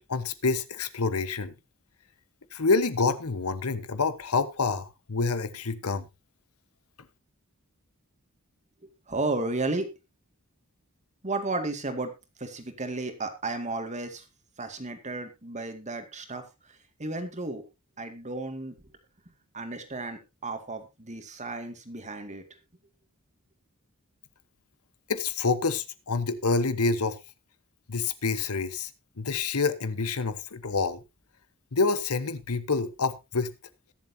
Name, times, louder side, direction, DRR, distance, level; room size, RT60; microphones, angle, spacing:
voice 1, 0.1-1.5 2.5-6.1 25.1-27.2 27.9-28.9 29.2-31.0 31.7-33.5, left 4 dB, 85° left, 1.1 m, -27 dB
voice 2, 8.8-9.9 11.2-12.1 12.4-14.3 14.6-17.6 18.0-18.8 19.5-22.4, right 2 dB, 35° right, 2.1 m, -33 dB
21.5 x 7.3 x 2.8 m
head